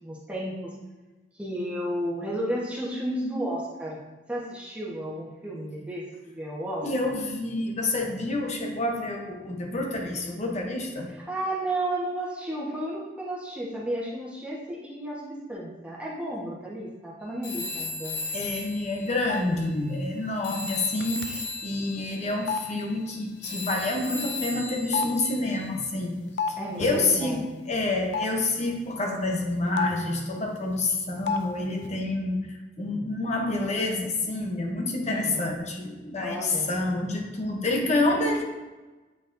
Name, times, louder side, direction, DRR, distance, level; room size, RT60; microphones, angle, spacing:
voice 1, 0.0-0.7 1.3-4.0 4.3-7.1 11.1-18.2 26.6-27.5 35.1-35.5 36.2-36.8, right 1 dB, 5° right, -6 dB, 1.2 m, -33 dB
voice 2, 6.8-11.1 18.3-26.2 26.8-32.4 32.8-38.4, left 2 dB, 40° left, 1 dB, 0.9 m, -28 dB
Telephone, 17.4-20.2 20.4-25.7, left 3 dB, 70° left, 1.3 m, -37 dB
sound 1, 19.3-19.4 20.7-20.8 21.0-21.4 22.5-22.6 24.3-24.4 24.9-26.5 26.8-27.0 28.1-28.3 29.8-30.1 31.3-31.4 31.7-31.9, left 5 dB, 90° left, 0.5 m, -30 dB
8.3 x 4.9 x 2.6 m, 1.2 s
head